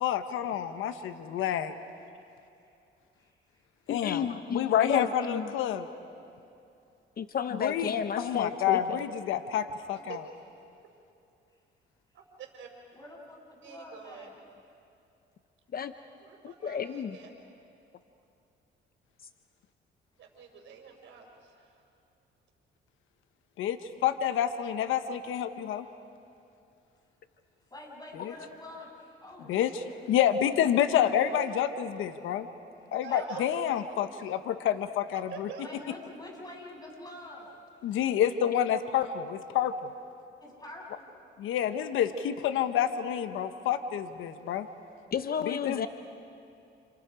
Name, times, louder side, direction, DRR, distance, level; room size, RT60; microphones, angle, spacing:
voice 1, 0.0-1.7 3.9-5.9 7.6-10.2 23.6-25.9 28.2-28.3 29.5-32.5 32.9-35.5 37.8-39.7 41.4-44.7 45.5-45.9, left 10 dB, 90° left, 9 dB, 1.1 m, -28 dB
voice 2, 2.4-2.7 3.2-3.6 13.0-14.4 27.7-29.8 33.0-34.1 35.6-37.5 40.4-41.1, left 1 dB, 20° left, -2 dB, 7.8 m, -47 dB
voice 3, 3.9-5.5 7.2-9.0 15.7-15.9 16.4-17.2 45.1-45.9, left 7 dB, 50° left, 9 dB, 0.8 m, -32 dB
voice 4, 12.1-12.7 13.6-14.3 16.2-17.3 20.2-21.8 33.0-33.4 35.3-35.6, right 7 dB, 80° right, 2 dB, 4.7 m, -46 dB
30.0 x 29.5 x 5.1 m, 2.6 s
cardioid pair, 90°, 20 cm